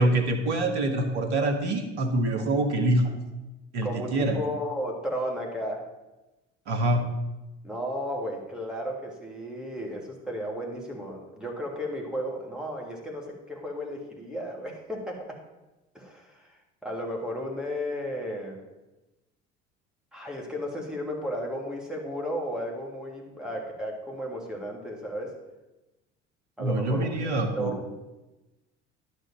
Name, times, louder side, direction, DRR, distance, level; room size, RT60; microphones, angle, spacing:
voice 1, 0.0-3.1 3.7-4.4 6.7-7.1 26.6-27.8, right 1 dB, 80° right, 6 dB, 1.5 m, -25 dB
voice 2, 3.8-5.8 7.6-15.4 15.9-16.5 16.8-18.6 20.1-25.3 26.6-27.9, equal, ahead, -2 dB, 2.9 m, -34 dB
11.0 x 5.1 x 7.8 m, 1.0 s
hypercardioid pair, 60°, 34 cm